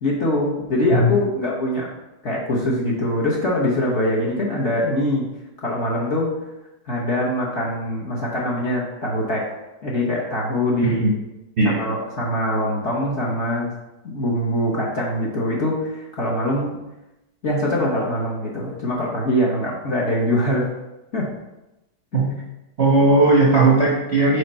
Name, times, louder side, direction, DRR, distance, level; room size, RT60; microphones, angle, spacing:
voice 1, 0.0-1.9 2.2-5.2 5.6-6.3 6.9-9.5 9.8-11.0 11.6-13.7 14.0-16.8 17.4-20.7 21.1-21.3, left 1 dB, 45° left, -5 dB, 1.1 m, -23 dB
voice 2, 10.8-11.1 11.6-11.8 22.1-22.4 22.8-24.4, right 2 dB, 45° right, -5 dB, 0.9 m, -17 dB
5.2 x 4.6 x 4.3 m, 0.96 s
omnidirectional pair, 2.2 m